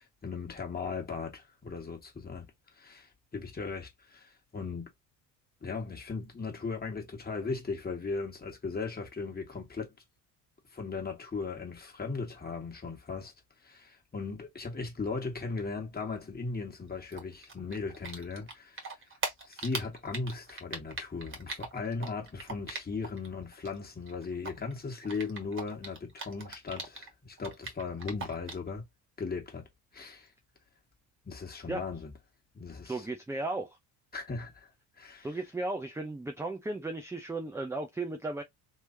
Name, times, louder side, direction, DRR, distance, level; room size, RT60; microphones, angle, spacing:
voice 1, 0.0-2.5 2.8-4.9 5.6-9.9 10.7-13.3 13.6-18.8 19.5-28.8 29.2-29.7 29.9-30.3 31.2-32.1 32.5-33.1 34.1-34.7 35.0-35.3, left 4 dB, 20° left, 1.7 m, -37 dB
Typing, 17.1-18.5 18.8-23.3 23.5-27.1 27.4-28.7, right 3 dB, 25° right, 1.7 m, -39 dB
voice 2, 32.9-33.8 35.2-38.4, right 2 dB, 5° right, 0.6 m, -35 dB
3.2 x 3.1 x 2.7 m
figure-of-eight pair, 55°, 50 cm